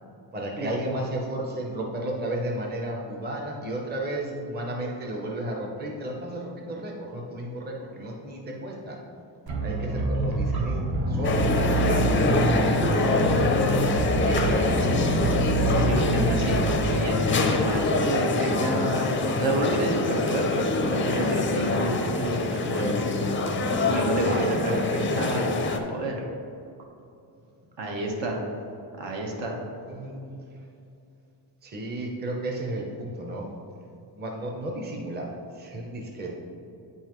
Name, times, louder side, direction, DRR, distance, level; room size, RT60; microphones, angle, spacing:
voice 1, 0.3-9.0 9.6-12.1 12.8-14.2 24.2-24.7 29.9-30.4 31.6-33.5 34.2-35.3 35.5-36.3, right 1 dB, 20° right, 0 dB, 0.7 m, -33 dB
sound 1, 9.5-17.1, right 2 dB, 50° right, 1.0 m, -26 dB
sound 2, 11.2-25.8, left 3 dB, 25° left, 0.4 m, -25 dB
voice 2, 12.9-13.2 14.2-23.0 23.7-26.3 27.8-28.5 29.0-29.6, right 1 dB, 70° right, 0 dB, 1.3 m, -30 dB
8.6 x 5.5 x 3.0 m, 2.6 s
cardioid pair, 150°, 46 cm